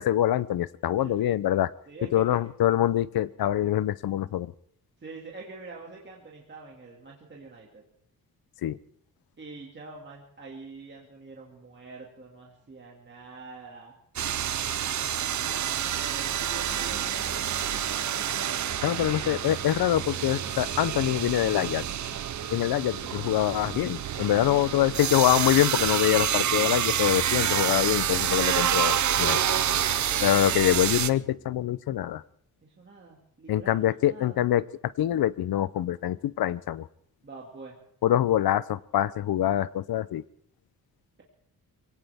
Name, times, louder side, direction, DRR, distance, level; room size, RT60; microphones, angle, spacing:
voice 1, 0.0-1.7 2.1-4.5 8.6-8.8 18.8-21.8 22.5-29.4 30.2-32.2 33.5-34.6 35.0-36.9 38.0-40.2, left 12 dB, 90° left, 18 dB, 0.6 m, -25 dB
voice 2, 1.9-2.4 5.0-7.8 9.4-14.0 14.8-19.4 24.4-25.4 29.2-30.9 32.6-34.4 37.2-37.8, right 3 dB, 30° right, -2 dB, 2.3 m, -45 dB
sound 1, 14.2-31.1, right 10 dB, 55° right, 0.6 m, -28 dB
sound 2, 16.6-31.6, left 1 dB, 10° left, 7.9 m, -52 dB
23.5 x 17.0 x 3.5 m, 0.68 s
wide cardioid pair, 165°, 35 cm